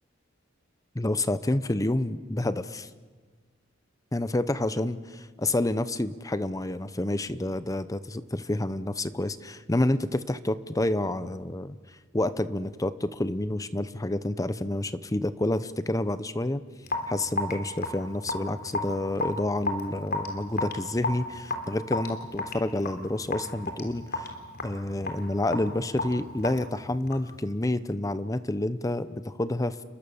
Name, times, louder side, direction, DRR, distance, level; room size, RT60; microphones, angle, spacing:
voice 1, 0.9-2.9 4.1-5.0 5.4-11.8 12.1-16.6 17.1-24.3 24.6-29.8, left 1 dB, 15° left, 13 dB, 0.7 m, -29 dB
Raindrop / Drip, 16.8-27.4, left 2 dB, 50° left, 3.5 m, -34 dB
30.0 x 22.0 x 7.1 m, 1.5 s
head